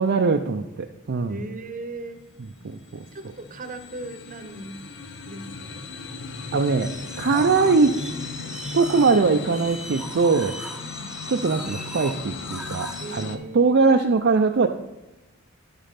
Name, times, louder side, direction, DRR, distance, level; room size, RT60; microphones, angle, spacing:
voice 1, 0.0-1.4 2.6-3.0 6.5-6.9 7.2-8.0 8.7-10.5 11.3-14.7, right 4 dB, 55° right, 3 dB, 0.5 m, -21 dB
voice 2, 1.3-2.2 3.1-4.8 5.2-5.9 10.8-11.2 13.0-14.0, right 2 dB, 40° right, 8 dB, 0.9 m, -38 dB
sound 1, 1.8-13.4, left 4 dB, 60° left, 0.8 m, -37 dB
sound 2, 6.8-13.3, right 1 dB, 5° right, 0.5 m, -39 dB
10.5 x 5.2 x 5.7 m, 1.0 s
head